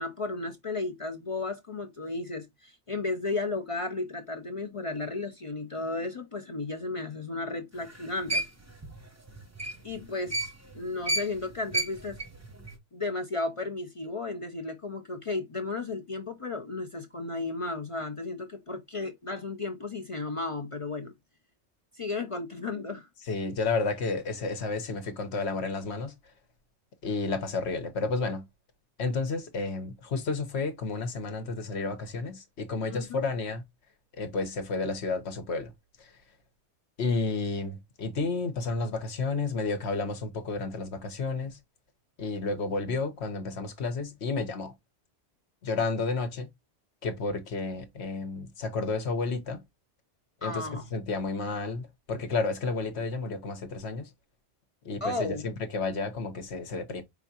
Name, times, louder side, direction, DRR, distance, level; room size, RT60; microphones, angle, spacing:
voice 1, 0.0-8.4 9.8-12.2 12.9-21.1 21.9-23.1 32.9-33.2 50.4-50.9 55.0-55.5, left 3 dB, 45° left, 0.4 m, -34 dB
sound 1, 7.8-10.8 11.0-12.8, right 1 dB, 15° right, 0.7 m, -32 dB
voice 2, 23.3-26.1 27.0-28.5 29.0-33.6 34.2-35.7 36.0-36.1 37.0-41.6 42.2-44.7 45.6-46.5 47.0-49.6 50.4-54.1 54.8-57.0, left 3 dB, 65° left, 1.2 m, -31 dB
4.9 x 3.5 x 2.8 m
omnidirectional pair, 1.2 m